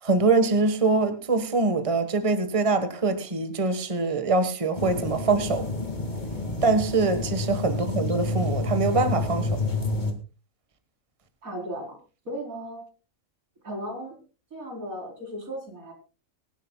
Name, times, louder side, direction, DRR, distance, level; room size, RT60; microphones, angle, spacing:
voice 1, 0.0-5.7 6.6-9.6, right 3 dB, 25° right, 1.5 m, -24 dB
sound 1, 4.7-10.1, left 2 dB, 35° left, 2.5 m, -29 dB
voice 2, 11.4-12.0 12.2-12.8 13.6-14.2 14.5-15.9, equal, 85° right, 4.7 m, -36 dB
24.0 x 11.5 x 2.3 m
omnidirectional pair, 1.4 m